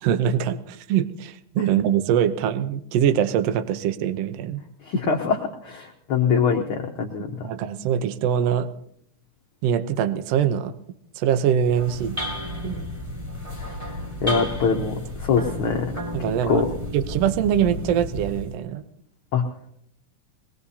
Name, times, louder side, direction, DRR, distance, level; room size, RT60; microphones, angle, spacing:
voice 1, 0.0-4.6 7.4-8.7 9.6-10.7 11.2-12.2 12.6-12.9 14.2-14.5 14.8-14.9 16.1-16.6 16.9-18.8, right 9 dB, 80° right, 10 dB, 1.4 m, -23 dB
voice 2, 4.8-7.3 13.6-16.0 16.5-16.7 19.3-19.4, left 6 dB, 70° left, 2 dB, 1.2 m, -24 dB
sound 1, 11.6-18.5, left 1 dB, 10° right, 3.0 m, -32 dB
22.5 x 19.5 x 2.8 m, 0.71 s
omnidirectional pair, 3.9 m